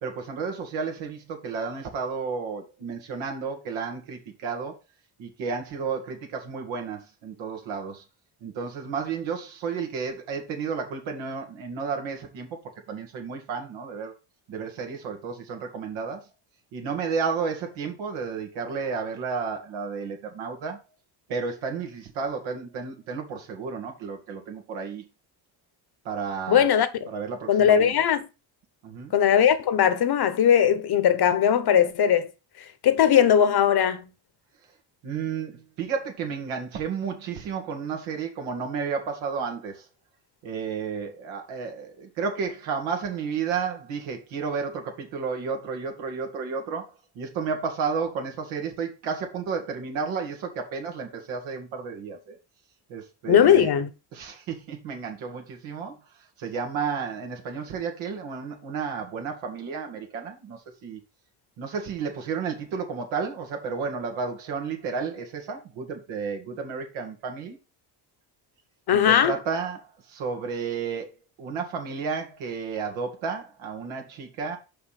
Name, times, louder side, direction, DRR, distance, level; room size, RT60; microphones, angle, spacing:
voice 1, 0.0-4.8 5.2-8.0 8.4-12.6 12.9-14.1 14.5-16.2 16.7-20.8 21.3-25.0 26.0-26.6 27.1-27.9 28.8-29.1 35.0-39.9 40.4-52.4 52.9-53.7 54.1-56.0 56.4-61.0 61.6-67.6 68.9-74.6, right 5 dB, 85° right, 2.2 m, -32 dB
voice 2, 26.5-26.9 27.5-28.3 29.1-32.3 32.8-34.1 53.3-53.9 68.9-69.3, left 9 dB, 55° left, 1.1 m, -19 dB
5.6 x 5.4 x 5.8 m
cardioid pair, 85°, 46 cm